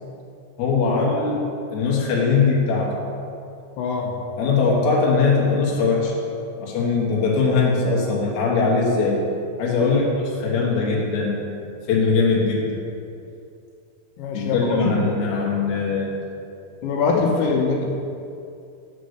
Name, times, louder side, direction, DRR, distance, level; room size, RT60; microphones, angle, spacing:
voice 1, 0.6-1.4 1.7-3.0 4.4-6.2 6.6-9.3 9.6-11.4 11.9-12.8 14.3-16.1, left 4 dB, 60° left, -3 dB, 2.3 m, -21 dB
voice 2, 3.8-4.1 9.8-10.0 14.2-15.1 16.8-17.9, left 4 dB, 85° left, 0 dB, 2.7 m, -23 dB
6.4 x 5.6 x 6.6 m, 2.6 s
omnidirectional pair, 4.6 m